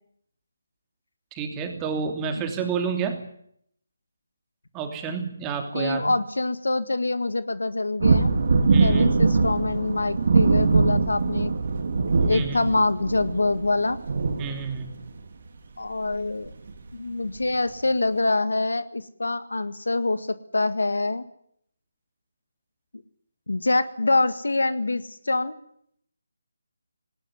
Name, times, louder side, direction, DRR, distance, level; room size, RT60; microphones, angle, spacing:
voice 1, 1.3-3.2 4.7-6.1 8.6-9.1 12.2-12.6 14.4-14.9, right 6 dB, 15° right, 5 dB, 3.0 m, -29 dB
voice 2, 5.7-8.3 8.8-11.5 12.3-14.0 15.8-16.5 16.9-21.3 23.5-25.5, left 2 dB, 85° left, 13 dB, 1.8 m, -25 dB
sound 1, 8.0-15.1 16.1-16.2 16.5-16.7 17.4-17.5, right 4 dB, 55° right, 3.2 m, -22 dB
19.0 x 19.0 x 9.8 m, 0.69 s
figure-of-eight pair, 160°, 0 cm